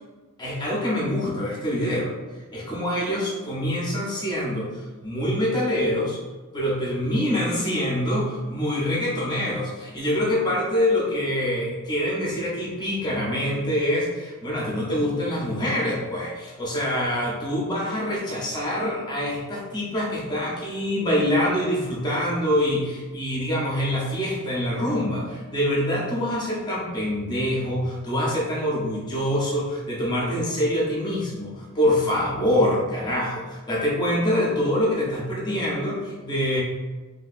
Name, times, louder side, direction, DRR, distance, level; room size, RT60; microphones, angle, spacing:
voice 1, 0.4-2.1 2.5-4.7 5.0-6.2 6.5-36.6, left 1 dB, 20° left, -5 dB, 0.8 m, -25 dB
2.8 x 2.7 x 2.5 m, 1.3 s
head